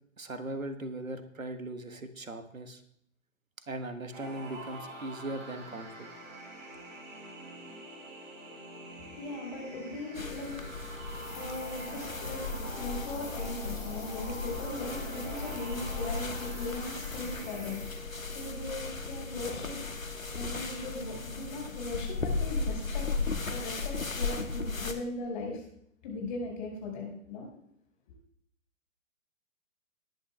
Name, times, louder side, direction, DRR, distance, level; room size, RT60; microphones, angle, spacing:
voice 1, 0.2-2.8 3.7-6.1, right 2 dB, 80° right, 9 dB, 1.4 m, -39 dB
sound 1, 4.1-17.8, right 2 dB, 35° right, 4.2 m, -45 dB
voice 2, 8.8-19.8 20.3-23.2 23.5-25.6 26.0-27.5, left 2 dB, 35° left, 0 dB, 5.1 m, -39 dB
sound 2, 10.1-24.9, left 3 dB, 75° left, 1.5 m, -36 dB
sound 3, 11.0-18.0, left 4 dB, 10° left, 3.2 m, -48 dB
19.5 x 10.5 x 2.3 m, 0.70 s
figure-of-eight pair, 125°, 40 cm